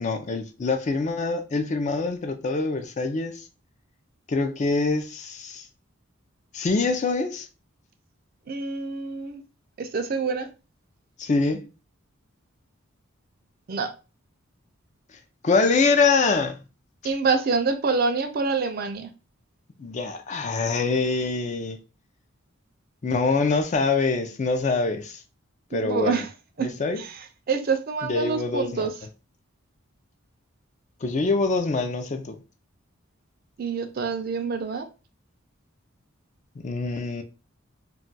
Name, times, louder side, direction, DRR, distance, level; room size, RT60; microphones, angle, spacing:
voice 1, 0.0-3.5 4.3-5.7 6.5-7.5 11.2-11.7 15.4-16.6 19.8-21.8 23.0-25.2 25.7-26.2 26.6-27.0 28.0-28.9 31.0-32.4 36.6-37.2, left 4 dB, 35° left, 0.4 m, -24 dB
voice 2, 8.5-9.4 9.8-10.5 13.7-13.9 17.0-19.1 25.7-26.3 26.6-26.7 27.0-27.2 27.5-28.9 33.6-34.9, right 4 dB, 45° right, 0.4 m, -26 dB
2.3 x 2.2 x 3.9 m
head